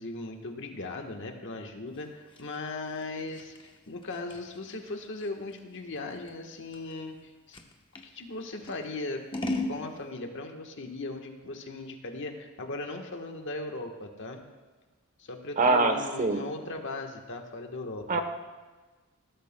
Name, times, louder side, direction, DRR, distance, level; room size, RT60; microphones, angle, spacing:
voice 1, 0.0-3.5 3.9-7.6 8.0-9.2 9.6-14.4 15.2-18.2, left 2 dB, 55° left, 3 dB, 1.3 m, -38 dB
Scissors, 1.9-8.1 8.6-9.8, left 2 dB, 20° left, 0.9 m, -38 dB
voice 2, 15.6-16.4 18.1-18.2, right 3 dB, 35° right, 7 dB, 0.9 m, -24 dB
19.0 x 12.5 x 2.2 m, 1.3 s
head